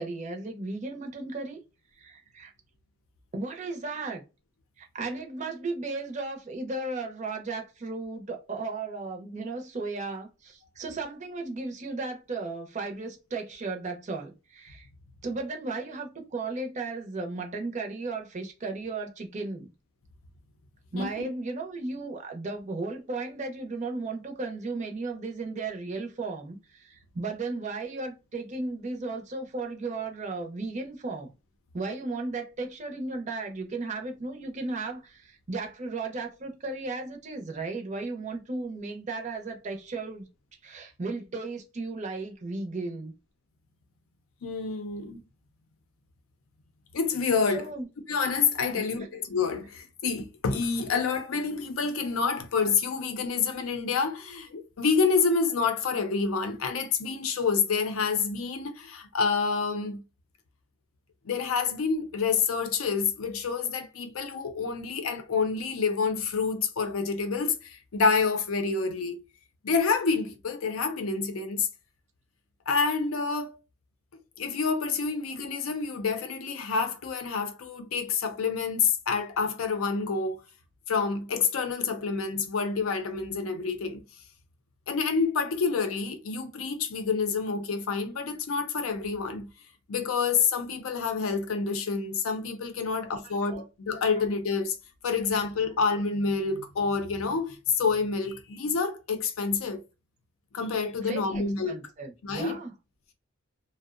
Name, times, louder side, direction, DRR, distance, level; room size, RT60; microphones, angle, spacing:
voice 1, 0.0-1.6 2.0-2.5 3.3-4.2 4.8-14.9 15.2-19.7 20.9-31.3 31.7-40.3 40.6-43.1 47.5-47.9 48.7-48.8 92.9-93.6 101.0-102.7, right 3 dB, 35° right, 0.5 m, -35 dB
voice 2, 21.0-21.3 44.4-45.2 46.9-47.7 48.1-60.0 61.2-69.2 69.6-71.7 72.7-73.6 74.4-80.4 80.9-84.0 84.9-89.5 89.9-94.8 95.0-99.8 100.5-101.8 102.2-102.6, left 5 dB, 85° left, 0.5 m, -28 dB
2.6 x 2.0 x 2.3 m
head